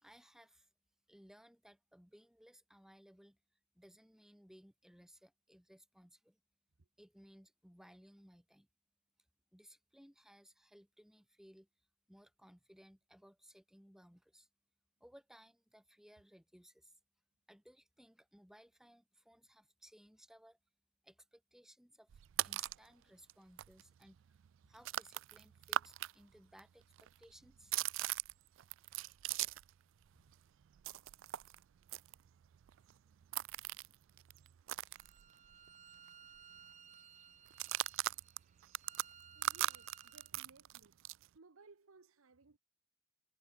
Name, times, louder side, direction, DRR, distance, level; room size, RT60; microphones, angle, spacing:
voice 1, 0.0-0.7 1.1-3.4 3.7-6.4 7.0-8.7 9.5-11.7 12.1-14.5 15.0-17.0 17.5-20.6 21.0-24.4 24.6-27.7, equal, ahead, 2.1 m, -62 dB
sound 1, 22.1-22.9 23.3-23.4 23.6-26.1 26.4-29.8 30.1-35.7 36.0-36.1 36.4-36.7 37.5-41.3, right 14 dB, 65° right, 0.3 m, -40 dB
Bowed string instrument, 34.9-40.3, right 8 dB, 35° right, 1.4 m, -60 dB
voice 2, 39.3-41.0 41.3-42.6, right 4 dB, 85° right, 1.0 m, -62 dB
head